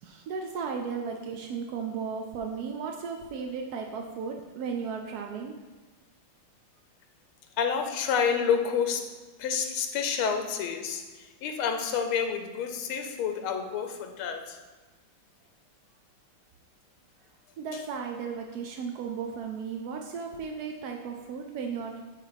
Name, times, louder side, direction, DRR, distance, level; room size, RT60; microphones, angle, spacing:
voice 1, 0.0-5.5 17.6-22.0, right 6 dB, 75° right, 3 dB, 0.9 m, -35 dB
voice 2, 7.6-9.1 9.4-14.6, left 7 dB, 85° left, 6 dB, 1.6 m, -29 dB
8.7 x 3.3 x 5.7 m, 1.3 s
omnidirectional pair, 2.3 m